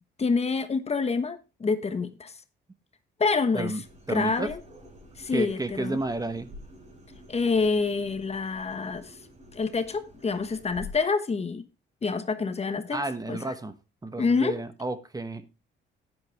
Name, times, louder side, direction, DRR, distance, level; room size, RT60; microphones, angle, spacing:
voice 1, 0.2-2.3 3.2-3.7 4.1-4.6 5.2-6.0 7.3-9.2 9.5-11.6 12.0-13.5 14.2-14.6, left 4 dB, 30° left, 1.1 m, -27 dB
sound 1, 3.8-10.9, left 1 dB, 35° right, 4.4 m, -48 dB
voice 2, 4.1-4.5 5.3-6.5 12.9-13.7 14.0-15.5, right 2 dB, 20° right, 1.1 m, -31 dB
10.5 x 9.6 x 3.4 m
cardioid pair, 90°, 20 cm